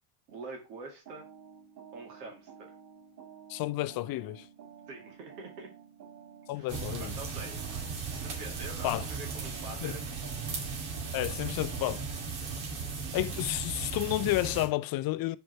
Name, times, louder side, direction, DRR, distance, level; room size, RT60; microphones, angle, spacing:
voice 1, 0.3-1.3 1.9-2.7 4.9-5.7 6.5-6.7 7.0-7.6 8.2-10.4, right 3 dB, 90° right, 2.5 m, -45 dB
sound 1, 1.0-12.3, right 7 dB, 50° right, 3.4 m, -52 dB
voice 2, 3.5-4.5 6.5-7.1 8.8-9.0 9.8-9.9 11.1-12.1 13.1-15.4, left 17 dB, 50° left, 0.5 m, -31 dB
sound 2, 6.7-14.7, right 5 dB, 70° right, 2.2 m, -37 dB
5.1 x 4.6 x 4.7 m
hypercardioid pair, 80°, 47 cm